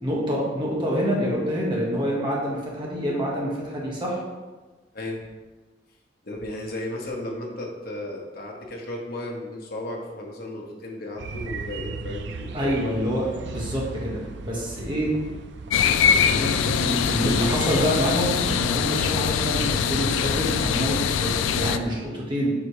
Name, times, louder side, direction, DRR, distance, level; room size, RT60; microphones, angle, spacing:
voice 1, 0.0-4.2 12.5-15.1 15.8-22.5, equal, 25° right, -4 dB, 1.3 m, -27 dB
voice 2, 6.2-12.7, left 1 dB, 55° left, -1 dB, 1.1 m, -34 dB
sound 1, 11.2-22.1, right 3 dB, 65° right, 0.4 m, -38 dB
sound 2, 15.7-21.8, left 7 dB, 85° left, 0.3 m, -23 dB
4.8 x 4.1 x 4.9 m, 1.3 s
head